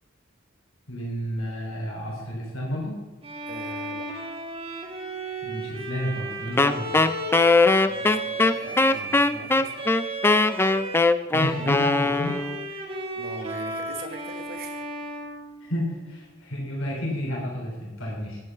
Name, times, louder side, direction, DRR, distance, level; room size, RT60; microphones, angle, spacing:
voice 1, 0.9-3.0 5.4-7.0 11.3-12.4 12.7-12.8 15.6-18.4, equal, 85° left, -3 dB, 3.6 m, -31 dB
Bowed string instrument, 3.2-11.1 11.4-16.2, right 2 dB, 30° right, 1.6 m, -35 dB
voice 2, 3.5-4.1 7.8-9.7 13.2-14.8, right 3 dB, 50° right, 5 dB, 1.3 m, -41 dB
Wind instrument woodwind instrument, 6.6-12.6, left 3 dB, 10° left, 0.3 m, -20 dB
11.0 x 8.6 x 5.5 m, 1.3 s
head